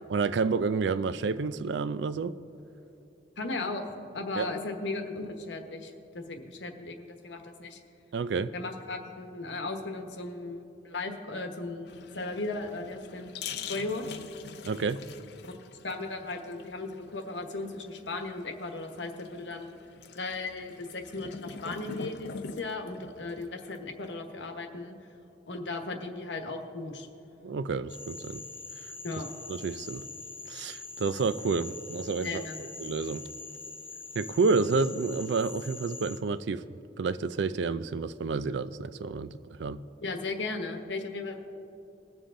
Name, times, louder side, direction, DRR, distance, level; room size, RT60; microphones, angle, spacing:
voice 1, 0.1-2.3 4.4-4.5 8.1-8.5 14.6-15.0 27.4-28.4 29.5-30.1 30.5-33.3 34.2-36.6 37.0-39.8, right 4 dB, 70° right, 14 dB, 0.4 m, -29 dB
voice 2, 3.4-3.8 4.1-7.8 8.5-13.3 13.7-14.2 15.4-15.5 15.8-19.7 20.1-25.0 25.5-27.1 29.0-29.3 32.2-32.6 40.0-41.4, left 3 dB, 85° left, 5 dB, 1.2 m, -36 dB
sound 1, 11.9-24.1, left 5 dB, 65° left, 0.6 m, -44 dB
Frog, 27.9-36.2, left 4 dB, 10° left, 0.5 m, -43 dB
21.0 x 7.2 x 3.8 m, 2.8 s
head